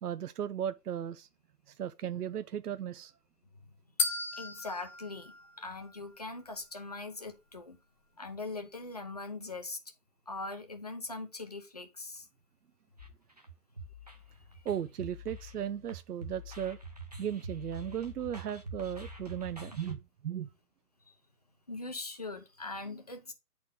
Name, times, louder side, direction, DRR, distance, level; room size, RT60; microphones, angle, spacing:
voice 1, 0.0-1.3 1.7-3.1 14.6-16.8 17.2-20.5, right 9 dB, 75° right, 0.7 m, -36 dB
sound 1, 4.0-6.2, left 3 dB, 55° left, 1.4 m, -36 dB
voice 2, 4.4-7.8 8.2-9.8 10.3-12.2 21.7-23.3, left 3 dB, 25° left, 0.7 m, -41 dB
sound 2, 13.0-20.0, right 1 dB, 25° right, 0.7 m, -46 dB
8.8 x 4.3 x 3.6 m
hypercardioid pair, 180°, 46 cm